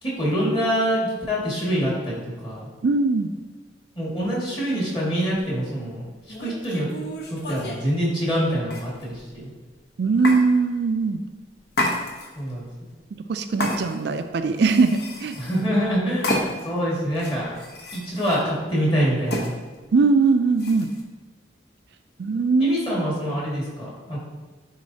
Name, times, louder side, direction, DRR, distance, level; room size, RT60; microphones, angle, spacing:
voice 1, 0.0-2.7 4.0-6.9 7.3-9.5 12.4-12.9 15.4-17.5 17.9-19.5 22.6-24.2, equal, 25° left, -5 dB, 1.9 m, -25 dB
voice 2, 2.8-3.3 10.0-11.2 13.3-15.4 19.9-20.9 22.2-22.8, right 4 dB, 65° right, 8 dB, 0.4 m, -20 dB
sound 1, 6.3-7.8 8.7-9.3 10.2-10.4 11.7-12.5 13.6-14.2 14.6-15.7 16.2-16.8 17.1-18.4 19.3-19.5 20.6-21.0, left 1 dB, 60° left, 0.9 m, -30 dB
9.5 x 3.8 x 2.8 m, 1.3 s
head